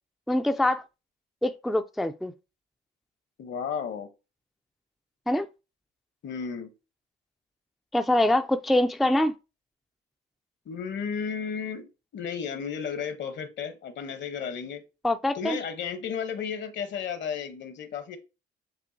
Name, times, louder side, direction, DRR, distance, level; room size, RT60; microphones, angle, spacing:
voice 1, 0.3-0.8 1.4-2.3 5.3-5.5 7.9-9.3 15.0-15.6, left 1 dB, ahead, 0.3 m, -24 dB
voice 2, 3.4-4.1 6.2-6.7 10.7-11.9 12.1-14.8 15.3-18.2, left 7 dB, 65° left, 1.0 m, -33 dB
7.3 x 2.5 x 2.7 m
cardioid pair, 90°, 20 cm